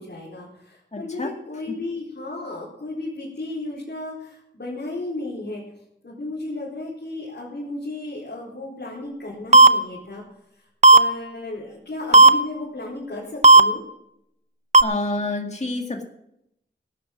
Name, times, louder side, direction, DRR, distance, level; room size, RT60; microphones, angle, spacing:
voice 1, 0.0-5.6 6.0-10.2 10.9-13.8, left 2 dB, 75° left, -7 dB, 4.3 m, -34 dB
voice 2, 0.9-1.3 14.8-16.0, left 2 dB, 40° left, 2 dB, 2.0 m, -28 dB
sound 1, 9.5-9.7 10.8-11.0 12.1-12.3 13.4-13.6 14.7-14.8, right 3 dB, 40° right, 0.7 m, -8 dB
17.0 x 9.4 x 6.0 m, 0.79 s
wide cardioid pair, 75°, 18 cm